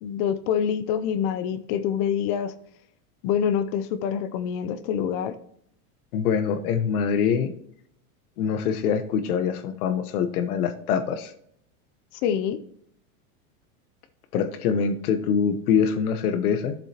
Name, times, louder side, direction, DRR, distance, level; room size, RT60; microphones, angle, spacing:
voice 1, 0.0-2.5 3.2-5.4 12.1-12.6, left 8 dB, 35° left, 13 dB, 0.4 m, -26 dB
voice 2, 6.1-7.5 8.4-11.3 14.3-16.8, left 7 dB, 80° left, 10 dB, 1.1 m, -24 dB
13.0 x 7.3 x 2.9 m, 0.71 s
supercardioid pair, 150°, 43 cm